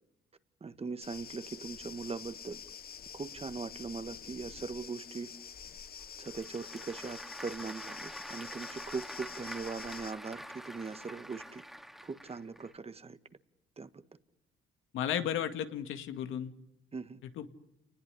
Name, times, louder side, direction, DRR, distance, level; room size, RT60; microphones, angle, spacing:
voice 1, 0.6-2.6 3.1-5.3 6.2-11.6 12.0-13.2 13.8-14.0 16.9-17.2, right 4 dB, 30° right, 12 dB, 1.5 m, -40 dB
sound 1, 1.0-10.1, left 8 dB, 50° left, 1.3 m, -48 dB
Applause / Crowd, 6.0-12.7, equal, ahead, 2.4 m, -46 dB
voice 2, 14.9-16.5 17.2-17.5, left 9 dB, 85° left, 8 dB, 2.2 m, -34 dB
29.5 x 20.0 x 9.9 m, 0.82 s
cardioid pair, 90°, 20 cm